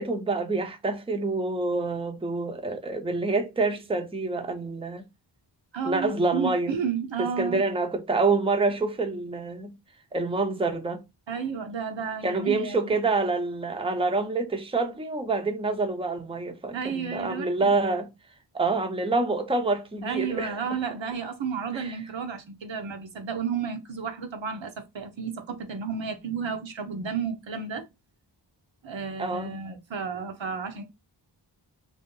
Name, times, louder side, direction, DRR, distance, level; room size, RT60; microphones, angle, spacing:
voice 1, 0.0-5.1 5.8-6.8 7.2-9.8 10.1-11.0 12.2-18.1 18.5-20.6 21.7-21.9 29.2-29.6, right 3 dB, 10° right, 0.6 m, -27 dB
voice 2, 5.7-7.6 11.3-12.9 16.7-17.7 20.0-27.9 28.8-30.8, right 6 dB, 75° right, 0.9 m, -32 dB
3.1 x 2.7 x 3.7 m
wide cardioid pair, 75°, 45 cm